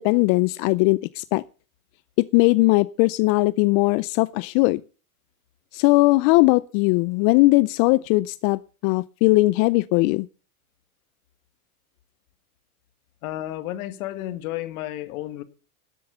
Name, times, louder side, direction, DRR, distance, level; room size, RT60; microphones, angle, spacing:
voice 1, 0.0-1.4 2.2-4.8 5.7-10.3, left 22 dB, 50° left, 0.5 m, -19 dB
voice 2, 13.2-15.4, left 14 dB, 70° left, 1.6 m, -32 dB
12.5 x 8.6 x 6.7 m
supercardioid pair, 110°, 44 cm